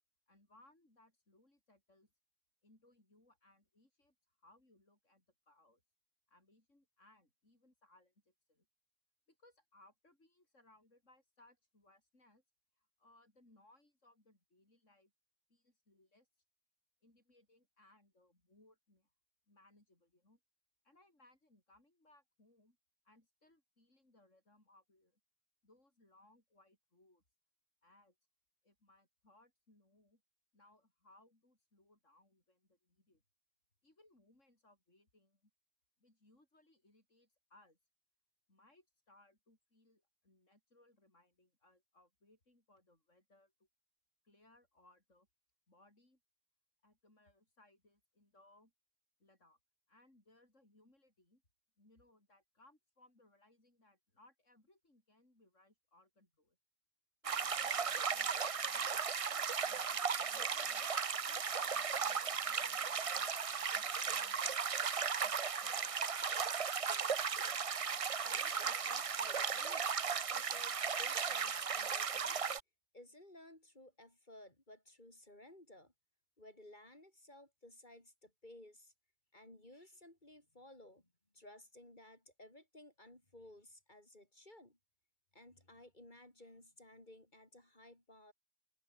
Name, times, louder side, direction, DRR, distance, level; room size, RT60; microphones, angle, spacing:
voice 1, 0.3-2.1 2.6-5.8 6.3-8.7 9.3-12.4 12.8-15.1 15.5-16.3 17.0-19.1 19.5-20.4 20.8-22.8 23.0-25.2 25.6-27.2 27.8-28.2 28.6-30.2 30.5-33.2 33.8-35.5 36.0-37.8 38.5-43.7 44.2-45.3 45.7-46.2 46.8-48.7 49.2-49.6 49.9-51.4 51.8-56.6 57.2-58.4 58.7-60.9 61.3-63.4 63.7-65.3 65.6-66.1, left 2 dB, 80° left, 7.5 m, -68 dB
sound 1, 57.2-72.6, right 6 dB, 35° right, 0.6 m, -36 dB
voice 2, 68.2-70.0 70.3-72.4 72.9-75.9 76.4-78.9 79.3-81.1 81.3-84.8 85.3-88.3, left 1 dB, 40° left, 4.6 m, -58 dB
omnidirectional pair, 1.3 m